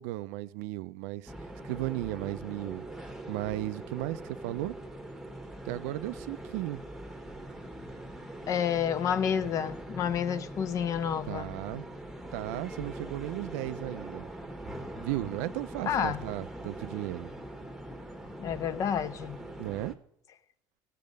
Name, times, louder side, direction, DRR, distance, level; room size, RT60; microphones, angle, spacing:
voice 1, 0.0-1.3 1.6-2.8 3.3-4.7 5.6-6.8 11.3-11.9 12.3-14.2 15.0-17.3 19.6-20.0, right 17 dB, 90° right, 0.5 m, -35 dB
sound 1, 1.3-19.9, right 1 dB, 5° right, 1.2 m, -42 dB
voice 2, 8.5-11.5 15.9-16.3 18.4-19.4, left 8 dB, 45° left, 0.8 m, -29 dB
17.5 x 7.5 x 5.3 m
cardioid pair, 130°, 8 cm